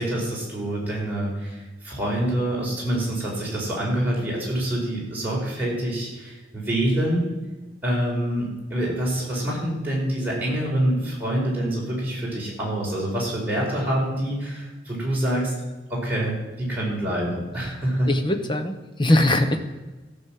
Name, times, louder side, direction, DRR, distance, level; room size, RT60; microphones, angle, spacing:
voice 1, 0.0-7.2 7.8-15.5 15.9-18.1, right 1 dB, 10° right, -6 dB, 4.8 m, -26 dB
voice 2, 18.1-19.6, left 1 dB, 25° left, 7 dB, 1.0 m, -21 dB
14.5 x 6.4 x 7.5 m, 1.2 s
head